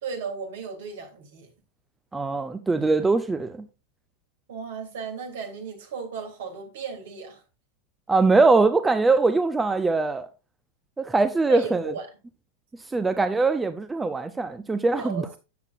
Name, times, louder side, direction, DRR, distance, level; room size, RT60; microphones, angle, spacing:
voice 1, 0.0-1.5 4.5-7.4 11.5-12.1 15.0-15.4, right 5 dB, 55° right, 3.2 m, -35 dB
voice 2, 2.1-3.7 8.1-10.3 11.0-11.9 12.9-15.2, right 3 dB, 10° right, 0.7 m, -22 dB
12.5 x 9.0 x 2.6 m
figure-of-eight pair, 90°, 0 cm